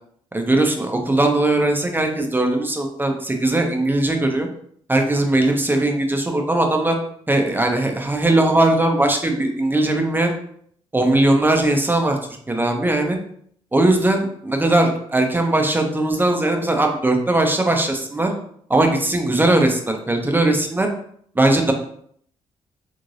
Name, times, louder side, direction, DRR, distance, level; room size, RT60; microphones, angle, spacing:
voice 1, 0.3-4.5 4.9-7.0 7.3-10.4 10.9-12.2 12.5-13.2 13.7-18.3 18.7-20.9 21.3-21.7, right 2 dB, 15° right, 3 dB, 0.8 m, -19 dB
3.6 x 3.2 x 2.6 m, 0.63 s
supercardioid pair, 60°, 12 cm